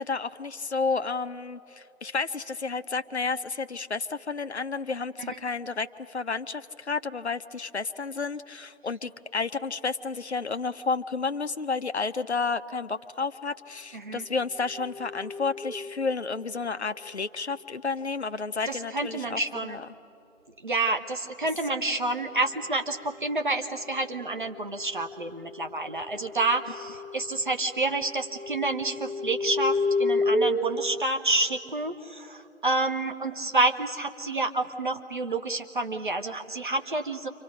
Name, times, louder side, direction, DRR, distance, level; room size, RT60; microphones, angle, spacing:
voice 1, 0.0-19.9, left 4 dB, 50° left, 11 dB, 0.7 m, -31 dB
voice 2, 13.9-14.3 18.7-19.8 20.6-37.3, right 2 dB, 35° right, 5 dB, 1.1 m, -29 dB
sound 1, 14.7-16.1 23.9-27.5 27.8-31.0, left 2 dB, 75° right, 1.0 m, -31 dB
29.0 x 25.5 x 5.1 m, 2.7 s
figure-of-eight pair, 160°, 42 cm